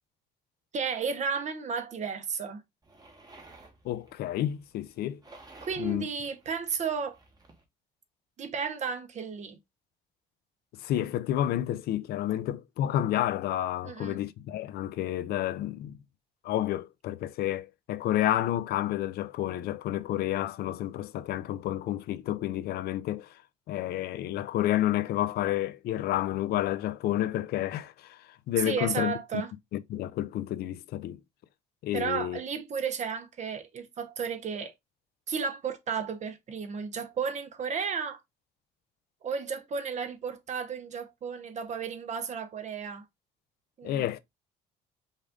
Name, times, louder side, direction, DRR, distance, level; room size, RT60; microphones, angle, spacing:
voice 1, 0.7-2.6 5.6-7.2 8.4-9.6 13.8-14.2 28.6-29.5 31.9-34.7 35.3-38.2 39.2-43.0 43.8-44.1, right 6 dB, 45° right, 1.0 m, -33 dB
sound 1, 2.8-7.6, right 2 dB, 25° right, 1.3 m, -54 dB
voice 2, 3.8-5.2 5.8-6.1 10.8-16.0 16.4-23.3 23.7-29.4 29.7-31.2 31.8-32.4 43.8-44.2, left 13 dB, 70° left, 0.5 m, -30 dB
5.3 x 2.6 x 3.6 m
cardioid pair, 110°, 17 cm